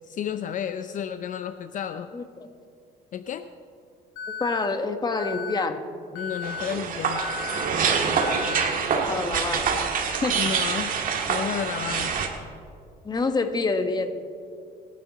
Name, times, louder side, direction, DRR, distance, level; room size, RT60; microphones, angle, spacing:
voice 1, 0.1-2.1 3.1-3.5 6.1-7.2 10.4-10.9 11.3-12.2, left 8 dB, 50° left, 10 dB, 0.6 m, -31 dB
Alarm, 4.2-4.7 5.2-5.7 6.2-6.7 7.2-7.7 8.2-8.7, left 6 dB, 85° left, 0.8 m, -34 dB
voice 2, 4.4-5.8 9.1-9.7 10.0-10.4 13.0-14.1, left 3 dB, 25° left, 7 dB, 1.3 m, -27 dB
sound 1, 6.4-12.3, right 6 dB, 55° right, 1.9 m, -26 dB
26.0 x 9.6 x 4.1 m, 2.4 s
cardioid pair, 110°, 17 cm